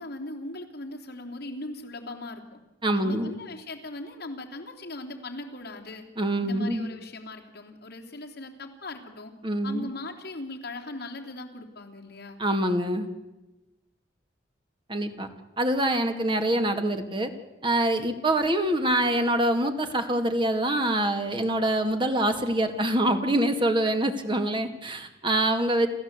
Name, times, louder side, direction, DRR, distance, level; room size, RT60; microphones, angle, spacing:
voice 1, 0.0-2.6 2.9-6.1 6.4-9.3 9.6-12.4, left 2 dB, 60° left, 2 dB, 3.2 m, -39 dB
voice 2, 2.8-3.3 6.2-6.9 9.4-9.9 12.4-13.1 14.9-15.3 15.6-17.3 17.6-25.9, right 1 dB, 25° right, 7 dB, 2.0 m, -25 dB
28.5 x 14.0 x 8.2 m, 1.0 s
head